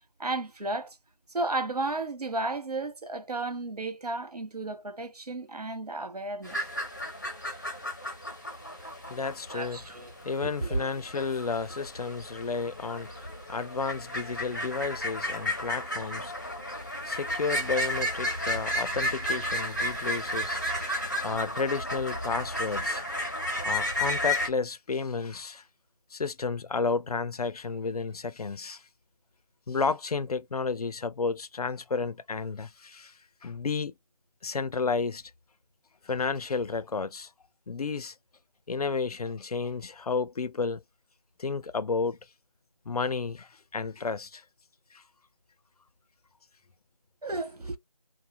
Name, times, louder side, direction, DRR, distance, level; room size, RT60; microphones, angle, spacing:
voice 1, 0.2-1.0 1.3-6.6 9.5-10.1 10.4-10.9 47.2-47.8, right 2 dB, 90° right, 0.8 m, -33 dB
sound 1, 6.4-24.5, left 1 dB, 30° left, 0.5 m, -33 dB
voice 2, 9.1-9.8 10.2-13.1 13.5-16.3 17.0-23.1 23.6-25.6 26.1-28.8 29.7-33.1 33.4-33.9 34.4-35.2 36.0-37.3 37.7-38.1 38.7-40.8 41.4-42.2 42.9-44.4 44.9-45.0, left 4 dB, 80° left, 0.4 m, -32 dB
2.5 x 2.0 x 2.8 m
figure-of-eight pair, 170°, 19 cm